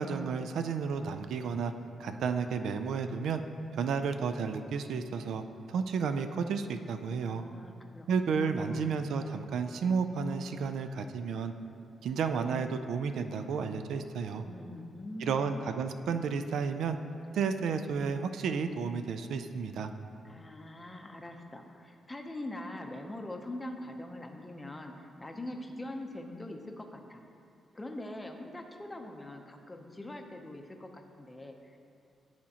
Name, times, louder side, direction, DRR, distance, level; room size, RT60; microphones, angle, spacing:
voice 1, 0.0-1.7 2.0-3.4 3.7-5.4 5.7-7.4 8.1-11.5 12.0-14.4 15.2-17.0 17.3-19.9, right 5 dB, 80° right, 8 dB, 0.3 m, -32 dB
voice 2, 7.2-9.0 14.5-15.6 20.2-27.2 27.7-31.8, left 1 dB, 15° left, 3 dB, 0.6 m, -43 dB
12.0 x 4.3 x 2.8 m, 2.5 s
cardioid pair, 110°, 0 cm